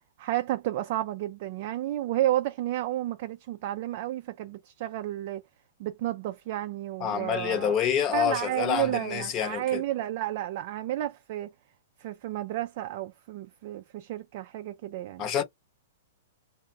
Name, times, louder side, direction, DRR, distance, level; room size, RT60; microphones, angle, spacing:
voice 1, 0.2-5.4 5.8-7.8 8.1-11.5 12.0-15.3, right 14 dB, 55° right, 0.3 m, -31 dB
voice 2, 7.0-9.8 15.2-15.4, left 9 dB, 35° left, 0.8 m, -27 dB
2.3 x 2.1 x 3.5 m
hypercardioid pair, 120°, 0 cm